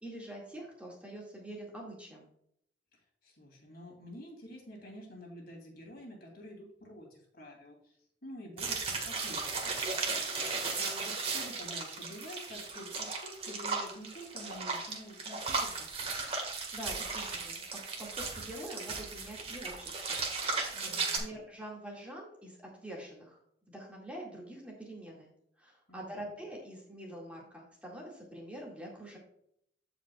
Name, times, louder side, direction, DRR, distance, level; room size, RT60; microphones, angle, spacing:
voice 1, 0.0-2.3 16.5-17.6 18.0-20.2 20.9-23.4 23.7-25.3 25.6-29.2, right 1 dB, 5° right, -3 dB, 2.0 m, -45 dB
voice 2, 2.9-9.9 10.2-16.2 20.7-21.3 25.9-26.3, equal, 55° left, 0 dB, 2.8 m, -49 dB
sound 1, 8.6-21.2, right 4 dB, 35° right, 1.6 m, -36 dB
15.0 x 5.1 x 2.3 m, 0.71 s
head